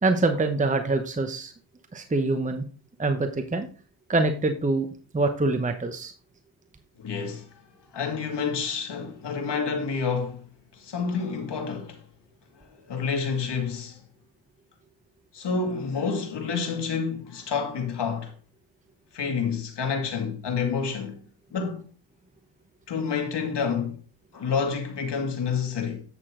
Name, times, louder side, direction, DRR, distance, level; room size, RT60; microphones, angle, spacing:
voice 1, 0.0-1.5 1.9-2.6 3.0-3.7 4.1-4.9 5.1-6.1, right 2 dB, 15° right, 0.9 m, -25 dB
voice 2, 7.0-7.5 7.9-10.4 10.8-12.0 12.6-14.0 15.3-18.3 19.1-21.2 21.5-21.8 22.9-24.0 24.3-26.0, left 5 dB, 60° left, 2.4 m, -29 dB
8.4 x 6.6 x 3.7 m
cardioid pair, 70°, 47 cm